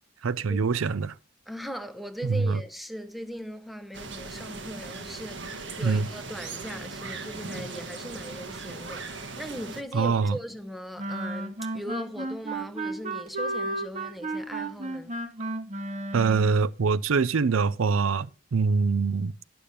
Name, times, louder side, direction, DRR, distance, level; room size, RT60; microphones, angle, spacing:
voice 1, 0.2-1.1 2.2-2.6 5.8-6.1 9.9-10.4 16.1-19.3, right 5 dB, 90° right, 0.5 m, -24 dB
voice 2, 1.5-15.1, equal, ahead, 0.7 m, -39 dB
sound 1, 3.9-9.8, right 3 dB, 65° right, 1.3 m, -39 dB
sound 2, 11.0-16.6, right 2 dB, 35° right, 1.1 m, -33 dB
10.5 x 6.8 x 5.6 m
head